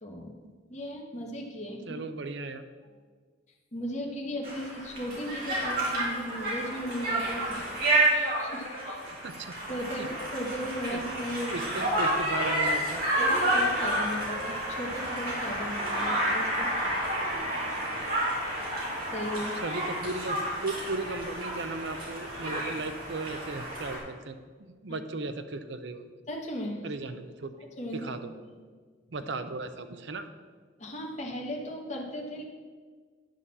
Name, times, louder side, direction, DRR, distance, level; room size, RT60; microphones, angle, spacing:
voice 1, 0.0-0.3 0.7-2.0 3.7-7.6 8.1-9.0 9.7-11.9 13.2-16.7 19.1-19.5 24.9-25.0 26.3-26.8 27.8-28.1 28.4-28.6 30.8-32.4, equal, 40° left, -1 dB, 1.3 m, -36 dB
voice 2, 1.9-2.7 9.0-9.5 10.0-10.1 10.9-11.0 11.5-13.0 19.5-26.1 26.8-27.5 27.9-28.3 29.1-30.3, right 3 dB, 70° right, 9 dB, 0.7 m, -36 dB
Conversation, 4.4-24.0, right 1 dB, 50° right, 2.9 m, -30 dB
10.0 x 4.1 x 7.3 m, 1.5 s
head